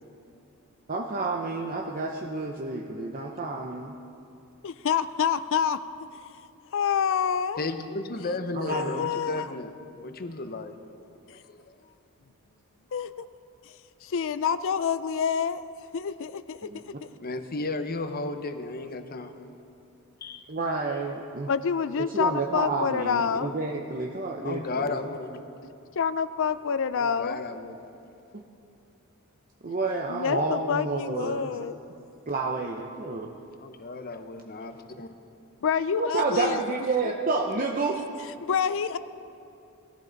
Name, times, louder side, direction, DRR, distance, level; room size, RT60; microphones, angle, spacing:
voice 1, 0.9-3.9 8.5-9.1 16.6-16.8 20.5-21.5 22.0-25.1 28.3-28.4 29.6-31.7 32.3-33.3 35.9-38.0, right 3 dB, 40° right, 1 dB, 0.7 m, -30 dB
voice 2, 4.6-5.8 6.7-7.6 8.7-9.5 12.9-13.2 14.0-15.6 15.9-16.7 21.5-23.6 26.0-27.4 30.1-31.8 35.6-36.6 38.4-39.0, left 7 dB, 60° left, 14 dB, 0.5 m, -27 dB
voice 3, 7.6-9.8 10.0-10.8 11.3-11.8 12.9-13.0 17.2-19.6 20.2-20.5 24.4-25.4 26.9-27.8 33.6-35.1, left 3 dB, 40° left, 8 dB, 0.8 m, -34 dB
20.5 x 14.0 x 4.0 m, 2.7 s
head